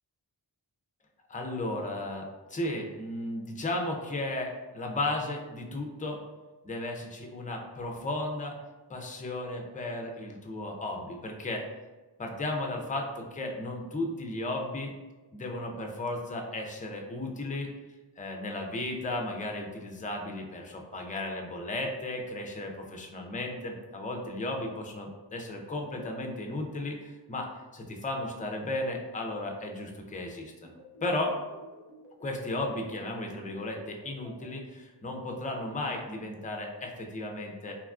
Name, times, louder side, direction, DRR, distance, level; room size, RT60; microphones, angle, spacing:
voice 1, 1.3-6.2 6.6-8.6 8.9-11.6 12.2-14.9 15.3-17.7 18.2-30.7 31.0-31.4 32.2-37.8, left 2 dB, 20° left, 2 dB, 0.4 m, -35 dB
sound 1, 30.6-34.5, equal, 85° right, 0.7 m, -51 dB
2.9 x 2.3 x 2.3 m, 1.2 s
wide cardioid pair, 65°, 44 cm